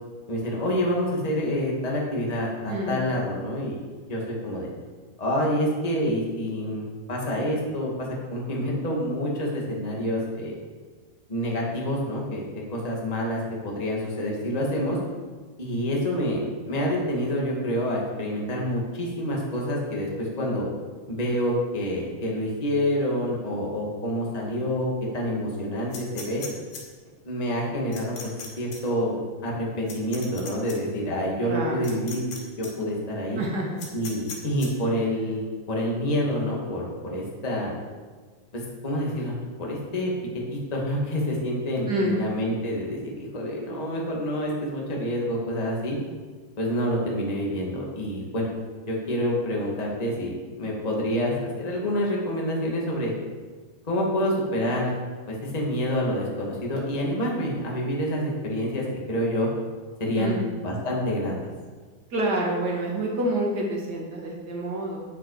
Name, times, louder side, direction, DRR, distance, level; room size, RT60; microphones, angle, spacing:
voice 1, 0.3-3.8 4.1-4.7 5.2-6.8 7.1-10.5 11.3-15.0 15.6-20.7 21.1-26.4 27.2-28.1 28.6-32.2 32.6-33.4 33.9-35.4 35.7-37.7 38.5-40.1 40.5-46.0 46.6-48.5 48.9-53.1 53.9-54.9 55.3-59.5 60.0-60.3 60.6-61.5, equal, 15° left, -2 dB, 1.6 m, -27 dB
voice 2, 2.7-3.0 31.4-31.8 33.4-33.8 41.9-42.2 60.1-60.5 62.1-65.0, right 1 dB, 35° right, -2 dB, 2.2 m, -28 dB
sound 1, 25.9-26.8 27.9-28.5 28.7-28.8 29.9-30.8 31.8-32.4 32.6-32.7 33.8-34.7, left 6 dB, 80° left, 3.7 m, -38 dB
9.7 x 9.6 x 4.9 m, 1.5 s
omnidirectional pair, 3.8 m